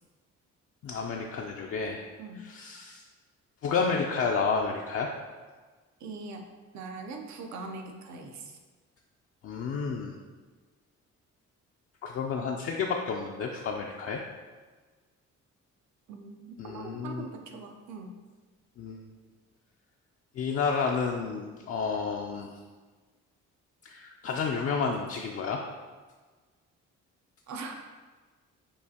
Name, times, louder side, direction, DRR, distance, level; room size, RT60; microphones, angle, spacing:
voice 1, 0.8-2.0 2.4-3.0 3.6-5.1 9.4-10.2 12.0-14.2 16.6-17.3 18.8-19.0 20.4-22.5 23.8-25.6, left 5 dB, 50° left, 0 dB, 0.4 m, -30 dB
voice 2, 2.2-2.5 6.0-6.5 6.7-8.6 16.1-18.2 27.5-27.8, right 3 dB, 70° right, 3 dB, 0.7 m, -41 dB
6.6 x 2.5 x 2.8 m, 1.4 s
cardioid pair, 90°, 30 cm